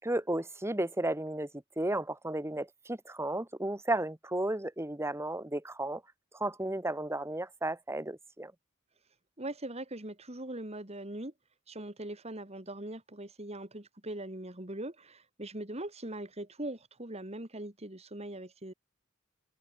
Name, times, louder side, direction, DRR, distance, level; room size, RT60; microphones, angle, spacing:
voice 1, 0.0-1.5 1.8-6.0 6.3-8.5, right 1 dB, 10° right, 1.4 m, -33 dB
voice 2, 9.4-11.3 11.7-18.7, right 1 dB, 30° right, 2.8 m, -41 dB
head